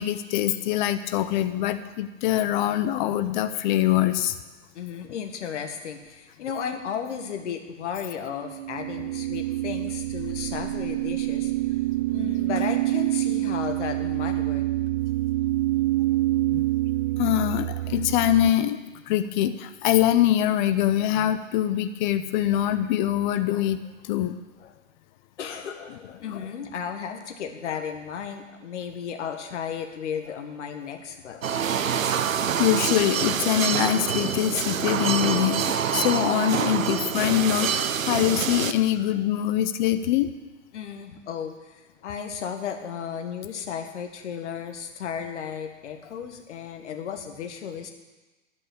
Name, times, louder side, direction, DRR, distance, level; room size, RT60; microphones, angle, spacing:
voice 1, 0.0-4.4 16.5-16.6 17.2-18.8 19.1-23.8 24.0-24.3 26.3-26.4 32.6-40.3, left 12 dB, 35° left, 11 dB, 0.6 m, -24 dB
voice 2, 4.7-11.5 12.1-14.6 24.6-24.7 25.4-31.7 40.7-47.9, left 7 dB, 60° left, 5 dB, 1.5 m, -34 dB
sound 1, 8.4-18.5, right 17 dB, 40° right, 0.5 m, -26 dB
sound 2, 31.4-38.7, right 8 dB, 85° right, 0.7 m, -26 dB
11.0 x 5.5 x 8.4 m, 1.2 s
figure-of-eight pair, 110°, 39 cm